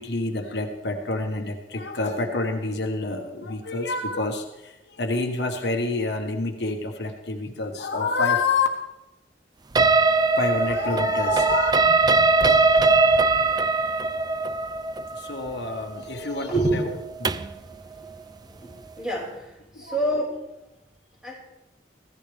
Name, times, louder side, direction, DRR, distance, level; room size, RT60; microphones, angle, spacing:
voice 1, 0.0-8.7 10.4-11.7 15.1-16.8 17.2-17.3 19.7-20.0, left 3 dB, 65° left, 3 dB, 1.4 m, -27 dB
sound 1, 9.8-17.6, right 3 dB, 25° right, 0.5 m, -21 dB
voice 2, 19.0-20.4 21.2-21.4, right 1 dB, 5° right, -3 dB, 5.7 m, -26 dB
25.0 x 16.5 x 3.5 m, 0.94 s
head